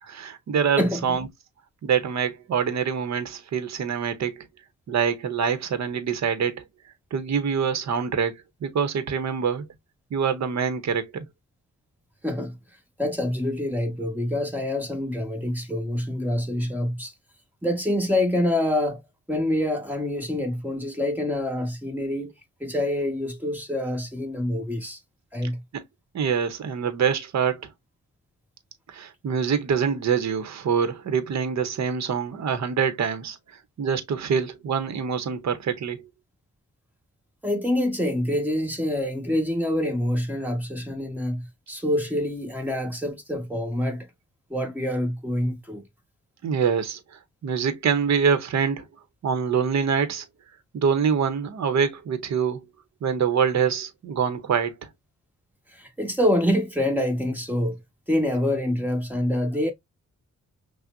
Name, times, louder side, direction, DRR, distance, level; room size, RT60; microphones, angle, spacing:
voice 1, 0.0-1.3 1.8-4.5 4.9-6.6 7.1-9.7 10.1-11.3 25.7-25.8 26.1-27.7 28.9-33.4 33.8-36.0 46.4-47.0 47.4-48.9 49.2-50.2 50.7-52.6 53.0-54.7, right 6 dB, 60° right, 0.8 m, -25 dB
voice 2, 0.8-1.2 12.2-12.5 13.0-17.1 17.6-19.0 19.3-22.3 22.6-25.0 25.3-25.6 37.4-44.1 44.5-45.8 55.7-57.8 58.1-59.7, left 1 dB, 5° right, 1.3 m, -26 dB
5.8 x 2.1 x 2.5 m
cardioid pair, 90°, 31 cm